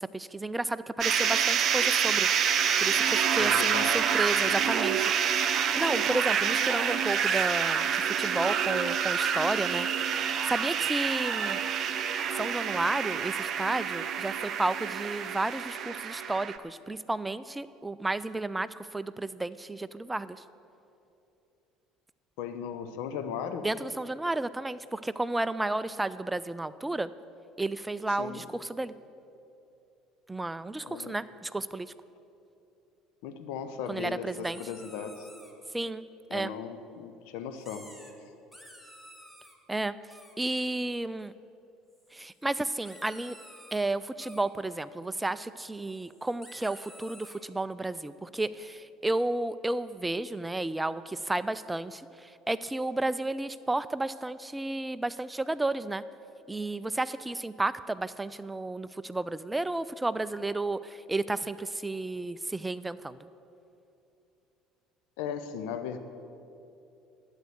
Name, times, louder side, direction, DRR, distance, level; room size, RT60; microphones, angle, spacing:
voice 1, 0.0-2.3 2.8-11.6 12.3-20.4 23.6-27.1 27.6-28.9 30.3-31.9 33.9-34.6 35.7-36.0 36.3-36.5 39.7-40.0 40.4-41.3 42.1-43.4 43.7-56.0 56.5-63.2, right 2 dB, 10° right, 15 dB, 0.4 m, -32 dB
sound 1, 1.0-16.6, right 7 dB, 45° right, 0.8 m, -27 dB
voice 2, 3.4-4.0 4.4-4.7 22.4-23.7 28.2-28.4 30.8-31.2 33.2-35.3 36.3-37.9 65.2-66.0, left 7 dB, 65° left, 8 dB, 0.9 m, -37 dB
sound 2, 34.4-35.5 37.6-38.1 38.4-39.6 40.1-40.4 41.9-42.4 42.8-43.8 44.2-44.4 45.7-47.4, equal, 10° left, 2.0 m, -51 dB
12.0 x 8.9 x 8.1 m, 2.8 s
figure-of-eight pair, 60°, 0 cm